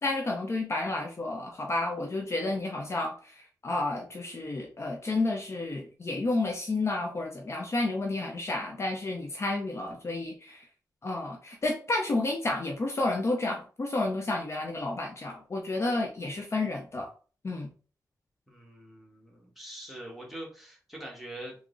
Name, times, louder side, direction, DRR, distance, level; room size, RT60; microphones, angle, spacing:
voice 1, 0.0-10.7 11.0-17.1 17.4-17.7, left 2 dB, 40° left, 1 dB, 0.6 m, -31 dB
voice 2, 18.5-21.5, right 1 dB, ahead, -2 dB, 1.2 m, -43 dB
3.6 x 2.0 x 3.6 m, 0.39 s
wide cardioid pair, 105°, 7 cm